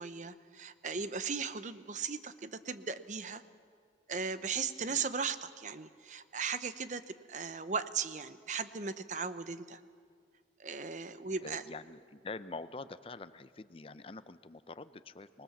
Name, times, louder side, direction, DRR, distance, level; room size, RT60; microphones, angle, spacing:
voice 1, 0.0-3.4 4.1-9.8 10.6-11.6, right 5 dB, 45° right, 12 dB, 0.8 m, -37 dB
voice 2, 11.4-15.4, left 3 dB, 30° left, 13 dB, 0.6 m, -46 dB
25.5 x 20.0 x 7.2 m, 2.1 s
head